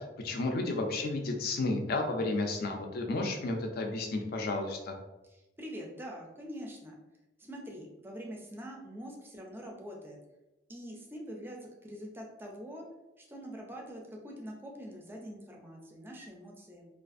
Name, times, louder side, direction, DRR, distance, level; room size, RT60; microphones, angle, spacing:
voice 1, 0.0-5.0, left 2 dB, 55° left, 3 dB, 0.4 m, -32 dB
voice 2, 5.3-7.0 7.4-10.2 10.7-12.9 13.2-16.9, equal, 10° right, 0 dB, 0.4 m, -44 dB
2.4 x 2.3 x 2.5 m, 1.0 s
head